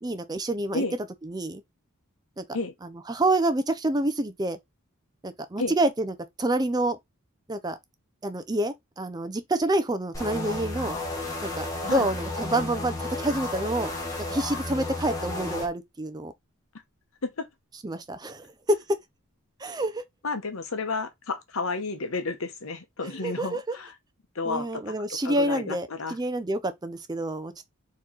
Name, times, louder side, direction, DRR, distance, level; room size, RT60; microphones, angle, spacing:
voice 1, 0.0-0.8 1.2-1.6 2.4-2.5 3.1-4.6 5.2-7.0 7.5-7.8 8.2-11.0 11.4-13.9 14.3-16.3 17.8-19.0 19.6-20.0 23.0-23.8 24.5-27.7, right 1 dB, 20° right, 0.5 m, -28 dB
sound 1, 10.1-15.7, left 2 dB, 15° left, 1.3 m, -33 dB
voice 2, 20.2-23.9 24.3-24.9 25.2-26.2, left 3 dB, 70° left, 0.9 m, -31 dB
4.5 x 3.0 x 3.7 m
head